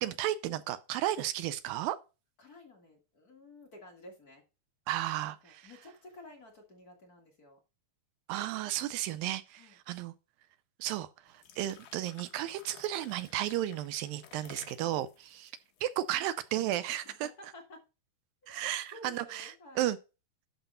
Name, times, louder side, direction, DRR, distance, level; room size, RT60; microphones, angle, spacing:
voice 1, 0.0-2.0 4.9-5.7 8.3-10.1 10.8-15.5 15.8-17.3 18.5-20.0, right 13 dB, 80° right, 2.2 m, -34 dB
voice 2, 2.4-4.4 5.2-7.6 9.5-9.8 14.8-15.1 16.9-17.8 18.4-19.9, left 2 dB, 35° left, 1.6 m, -53 dB
sound 1, 11.3-16.5, left 8 dB, 65° left, 2.4 m, -55 dB
11.5 x 4.1 x 5.5 m
omnidirectional pair, 4.4 m